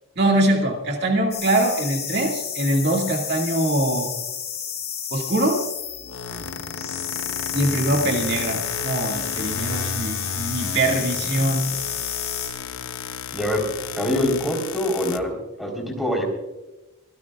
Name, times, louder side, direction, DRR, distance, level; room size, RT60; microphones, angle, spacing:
voice 1, 0.2-4.1 5.1-5.6 7.5-11.6, right 1 dB, 50° right, 1 dB, 2.2 m, -23 dB
sound 1, 1.3-12.5, left 8 dB, 30° left, 4.8 m, -31 dB
sound 2, 5.9-15.2, left 6 dB, 80° left, 0.8 m, -33 dB
voice 2, 13.3-13.6 14.0-16.2, left 1 dB, ahead, 1 dB, 3.8 m, -24 dB
25.5 x 16.5 x 2.4 m, 1.0 s
head